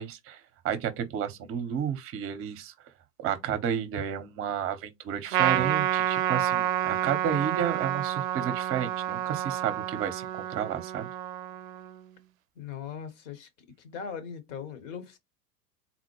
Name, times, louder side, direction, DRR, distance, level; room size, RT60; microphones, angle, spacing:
voice 1, 0.0-2.7 3.2-11.1, right 9 dB, 30° right, 0.9 m, -32 dB
Trumpet, 5.3-12.0, right 11 dB, 60° right, 0.5 m, -29 dB
voice 2, 12.6-13.5 13.8-15.2, left 7 dB, 50° left, 1.2 m, -39 dB
4.0 x 2.1 x 3.0 m
figure-of-eight pair, 90°, 48 cm